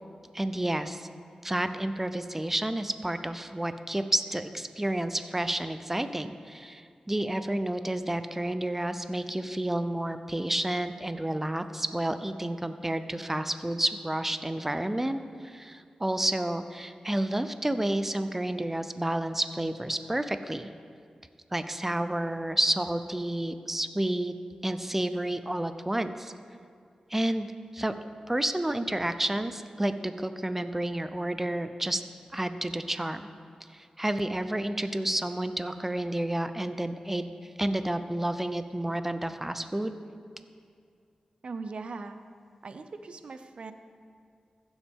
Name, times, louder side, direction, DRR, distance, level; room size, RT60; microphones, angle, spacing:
voice 1, 0.3-1.1 1.4-20.7 21.5-24.3 24.6-26.3 27.1-27.9 28.3-32.0 32.3-33.2 33.7-37.3 37.6-39.9, right 1 dB, 15° right, 10 dB, 0.5 m, -30 dB
voice 2, 41.4-42.2 42.6-43.7, right 4 dB, 60° right, 9 dB, 0.6 m, -40 dB
15.5 x 7.1 x 3.6 m, 2.3 s
wide cardioid pair, 75°, 2 cm